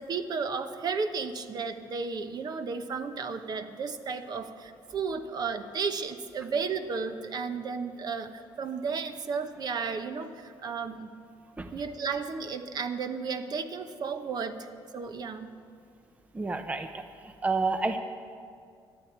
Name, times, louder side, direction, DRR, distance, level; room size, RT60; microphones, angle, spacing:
voice 1, 0.0-11.1 11.7-14.7 14.9-15.5, right 5 dB, 50° right, 8 dB, 0.9 m, -33 dB
voice 2, 16.3-17.0 17.4-18.0, right 3 dB, 15° right, 7 dB, 0.7 m, -29 dB
24.0 x 8.5 x 4.6 m, 2.3 s
cardioid pair, 100°, 9 cm